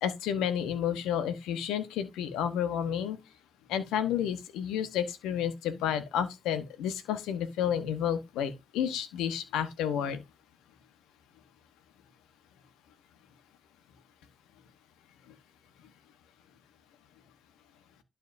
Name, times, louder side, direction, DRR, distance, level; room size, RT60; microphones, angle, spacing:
voice 1, 0.0-3.2 3.7-10.2, left 9 dB, 85° left, 1.1 m, -31 dB
11.5 x 5.5 x 2.7 m
supercardioid pair, 50°, 0 cm